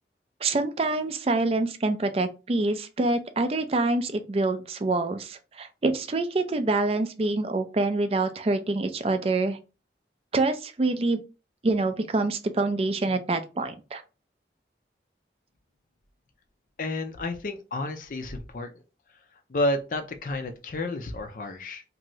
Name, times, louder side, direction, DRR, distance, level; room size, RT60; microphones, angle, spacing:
voice 1, 0.4-9.6 10.3-11.2 11.6-14.0, right 2 dB, 35° right, 0.4 m, -26 dB
voice 2, 16.8-18.7 19.5-21.8, left 1 dB, 50° left, 0.4 m, -30 dB
2.7 x 2.6 x 3.0 m
head